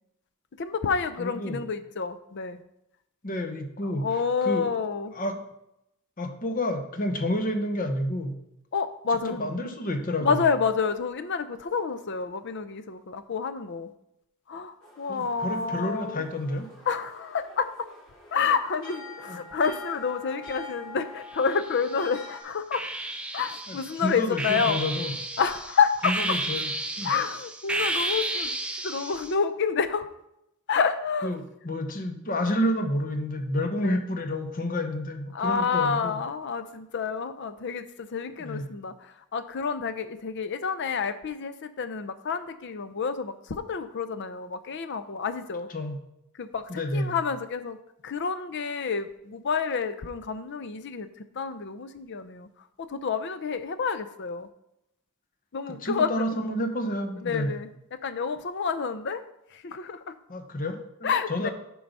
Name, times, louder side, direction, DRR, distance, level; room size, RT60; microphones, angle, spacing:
voice 1, 0.6-2.6 3.8-5.1 8.7-9.5 10.2-13.9 14.5-16.2 16.9-17.9 18.3-22.9 23.3-24.8 25.4-26.4 27.0-28.6 28.8-30.1 30.7-31.4 33.8-34.0 35.3-45.7 46.3-47.8 48.0-51.1 51.3-52.5 52.8-54.5 55.5-56.4 57.2-59.2 59.5-60.2 61.0-61.5, left 5 dB, 55° left, 11 dB, 0.5 m, -29 dB
voice 2, 1.2-1.6 3.2-4.1 4.4-4.7 5.1-5.4 6.2-8.3 9.3-10.4 15.1-16.7 19.3-19.4 23.7-25.1 26.0-26.7 27.0-27.1 31.2-36.2 38.4-38.7 45.7-46.0 46.7-47.1 55.7-57.5 60.3-61.5, left 1 dB, 40° left, 6 dB, 1.0 m, -29 dB
sound 1, 14.8-22.4, left 2 dB, 80° left, 2.6 m, -45 dB
sound 2, 21.3-22.1 22.7-29.3, right 2 dB, 5° right, 0.6 m, -32 dB
7.6 x 4.7 x 5.3 m, 0.82 s
head